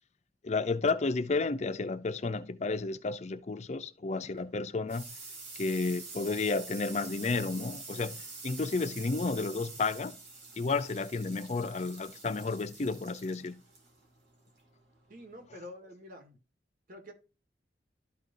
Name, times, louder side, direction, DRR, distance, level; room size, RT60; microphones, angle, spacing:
voice 1, 0.4-5.0 5.6-10.2 10.6-13.6, left 3 dB, 40° left, 0.5 m, -32 dB
sound 1, 4.2-15.5, right 3 dB, 80° right, 2.6 m, -47 dB
voice 2, 15.1-16.4 16.9-17.1, left 1 dB, 50° right, 1.7 m, -47 dB
12.5 x 5.2 x 2.6 m
head